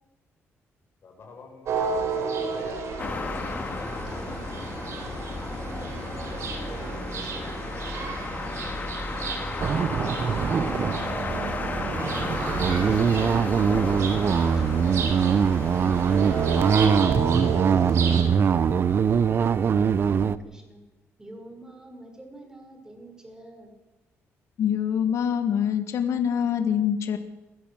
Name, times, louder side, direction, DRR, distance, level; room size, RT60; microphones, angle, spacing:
voice 1, 1.0-3.4 9.3-11.6 16.4-19.5, left 3 dB, 50° left, 2 dB, 7.8 m, -46 dB
sound 1, 1.6-18.2, right 5 dB, 65° right, 3.9 m, -33 dB
sound 2, 3.0-17.0, left 3 dB, 30° left, 2.1 m, -33 dB
voice 2, 4.1-4.5 4.9-8.1 12.4-15.2 20.2-20.8 21.2-23.7, right 2 dB, 10° right, 4 dB, 5.7 m, -46 dB
sound 3, 9.6-20.4, right 7 dB, 45° right, 0.9 m, -23 dB
voice 3, 24.6-27.2, left 8 dB, 70° left, 8 dB, 1.6 m, -25 dB
22.0 x 15.0 x 7.8 m, 1.1 s
cardioid pair, 120°, 5 cm